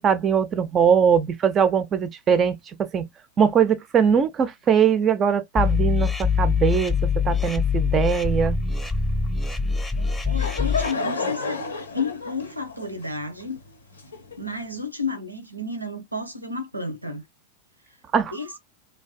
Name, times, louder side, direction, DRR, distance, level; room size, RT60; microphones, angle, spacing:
voice 1, 0.0-2.6 2.9-3.1 3.4-6.9 7.3-8.6 18.1-18.3, right 7 dB, 25° right, 0.4 m, -21 dB
sound 1, 5.6-10.9, left 5 dB, 10° left, 0.6 m, -23 dB
Laughter / Crowd, 10.0-14.6, left 3 dB, 70° left, 0.6 m, -31 dB
voice 2, 10.2-11.6 11.9-13.6 14.4-17.2 18.3-18.6, left 3 dB, 85° right, 0.6 m, -31 dB
2.5 x 2.2 x 2.2 m
figure-of-eight pair, 90°, 0 cm